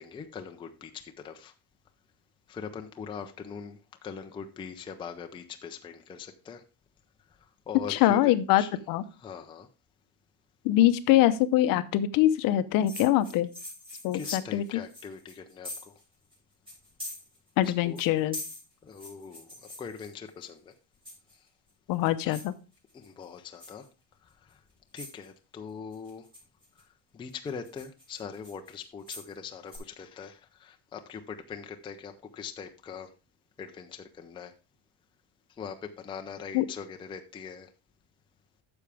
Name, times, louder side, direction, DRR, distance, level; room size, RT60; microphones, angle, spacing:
voice 1, 0.0-1.5 2.5-6.6 7.7-8.3 8.6-8.8 9.2-9.7 14.1-15.9 17.6-18.0 18.8-19.5 19.8-20.7 22.2-22.4 22.9-23.9 24.5-24.6 24.9-26.2 27.1-33.1 33.6-34.5 35.6-37.7, left 6 dB, 10° left, 5 dB, 0.5 m, -41 dB
voice 2, 7.9-8.6 8.9-9.0 10.6-13.5 14.0-14.6 17.6-18.4 21.9-22.5 36.5-36.6, left 13 dB, 55° left, 13 dB, 0.8 m, -23 dB
sound 1, 12.9-16.0 16.3-16.4 16.7-17.7 17.9-20.4 21.0-21.5 21.9-22.5 22.9-23.2 23.6-23.9 24.5-24.6 25.0-25.3 25.9-26.8 27.3-29.3 29.7-29.8, left 1 dB, 15° right, 5.2 m, -43 dB
9.8 x 7.0 x 3.4 m, 0.30 s
cardioid pair, 165°, 41 cm